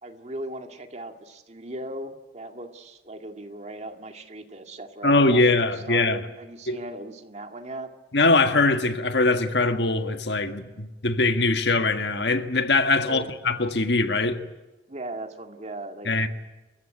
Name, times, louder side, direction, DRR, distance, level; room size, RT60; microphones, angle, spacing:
voice 1, 0.0-7.9 13.0-13.3 14.9-16.2, right 1 dB, 35° right, 2.1 m, -38 dB
voice 2, 5.0-6.2 6.7-6.8 8.1-14.4 16.0-16.3, left 3 dB, 65° left, 1.6 m, -22 dB
27.5 x 16.0 x 9.9 m
head